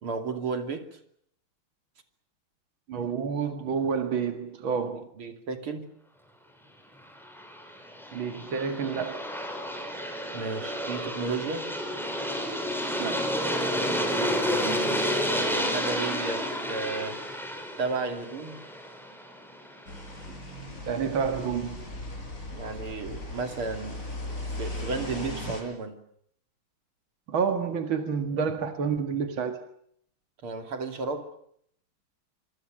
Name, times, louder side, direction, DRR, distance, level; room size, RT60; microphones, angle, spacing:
voice 1, 0.0-1.0 5.2-5.9 10.3-11.7 14.5-17.2 17.8-18.7 22.5-24.0 24.5-26.0 30.4-31.3, right 4 dB, 90° right, 3.7 m, -33 dB
voice 2, 2.9-5.1 8.1-9.3 13.0-13.3 20.3-20.4 20.9-21.9 27.3-29.6, right 6 dB, 70° right, 2.7 m, -29 dB
Aircraft, 7.2-20.0, equal, ahead, 5.9 m, -31 dB
sound 1, 19.9-25.6, left 2 dB, 35° left, 7.9 m, -38 dB
26.5 x 25.0 x 6.5 m
omnidirectional pair, 2.3 m